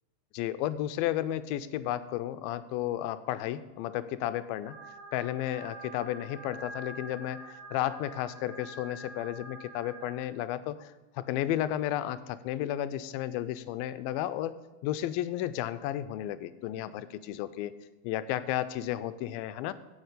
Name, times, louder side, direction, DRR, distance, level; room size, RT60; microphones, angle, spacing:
voice 1, 0.3-4.8 5.1-14.6 14.8-17.7 18.0-19.7, left 12 dB, 85° left, 13 dB, 2.3 m, -33 dB
sound 1, 4.6-10.1, right 2 dB, 50° right, 3.1 m, -46 dB
10.0 x 7.0 x 8.3 m, 1.1 s
omnidirectional pair, 4.3 m